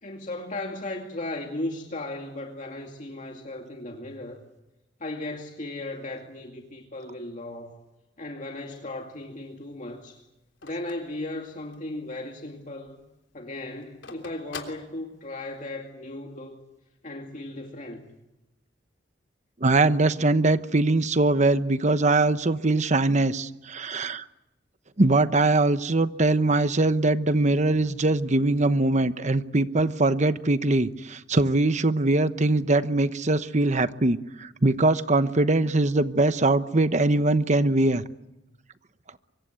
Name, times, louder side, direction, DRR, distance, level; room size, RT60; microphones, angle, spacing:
voice 1, 0.0-4.4 5.0-7.8 8.2-10.2 10.6-13.0 13.3-16.6 17.0-18.0, left 2 dB, 45° left, 2.4 m, -36 dB
Telephone, 8.6-12.0 12.4-12.5 12.7-15.6, left 4 dB, 85° left, 3.4 m, -45 dB
voice 2, 19.6-24.2 25.0-38.0, right 2 dB, 40° right, 1.0 m, -22 dB
25.0 x 24.0 x 8.2 m
head